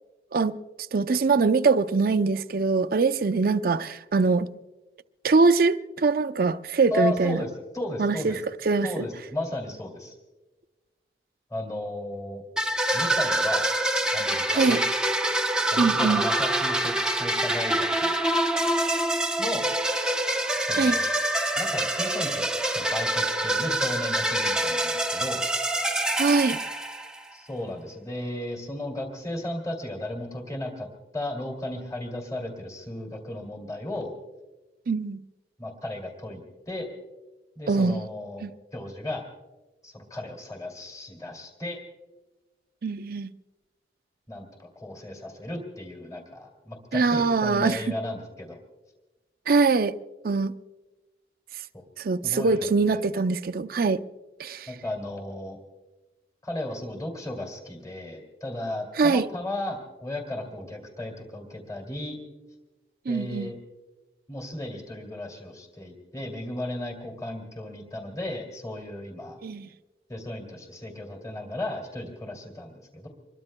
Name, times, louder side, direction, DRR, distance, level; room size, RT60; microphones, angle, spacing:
voice 1, 0.9-4.5 5.2-7.4 8.0-8.3 8.6-9.1 14.5-14.8 15.8-16.2 20.8-21.0 26.2-26.6 34.9-35.2 37.7-38.0 38.4-38.5 42.8-43.3 46.9-47.8 49.5-49.9 50.2-50.5 52.0-54.0 54.4-54.7 59.0-59.3 63.1-63.5 69.4-69.7, right 4 dB, 55° right, 0.5 m, -23 dB
voice 2, 6.9-8.4 8.8-10.2 11.5-12.4 12.9-13.7 14.1-14.8 15.7-18.2 19.4-19.7 20.6-21.0 21.6-25.4 27.3-30.9 31.1-34.1 35.6-36.9 37.6-39.2 39.8-41.8 44.3-48.6 52.2-53.0 54.7-55.6 56.4-62.2 63.1-63.6 64.3-69.4 70.1-73.1, left 1 dB, 20° left, 2.3 m, -35 dB
sound 1, 12.6-27.3, right 1 dB, 5° right, 0.7 m, -26 dB
26.0 x 22.5 x 2.2 m
head